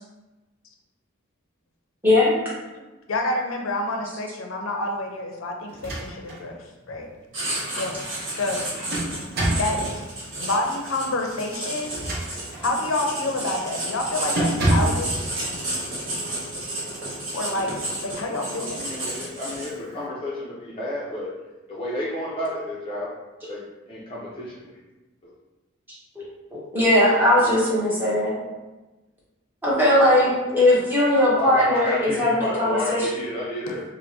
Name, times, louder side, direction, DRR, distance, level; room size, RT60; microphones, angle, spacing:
voice 1, 2.0-2.4 26.2-26.3 26.7-28.4 29.6-33.1, left 1 dB, 10° right, -7 dB, 0.9 m, -19 dB
voice 2, 2.7-7.1 7.8-8.0 8.3-8.6 9.5-9.8 10.4-11.9 12.6-15.3 17.3-19.1, left 2 dB, 80° left, 2 dB, 0.5 m, -28 dB
sound 1, 5.7-6.4 6.9-7.0 8.4-9.8 11.8-12.7 13.2-13.4 13.8-14.0 14.4-15.1, right 1 dB, 50° right, 0.6 m, -26 dB
Writing, 7.3-19.9, right 1 dB, 65° right, 1.1 m, -32 dB
voice 3, 18.8-21.3 21.7-23.1 23.4-24.7 25.2-25.3 27.0-27.3 31.3-33.8, left 1 dB, 25° left, -6 dB, 0.4 m, -31 dB
4.5 x 2.1 x 2.6 m, 1.1 s
head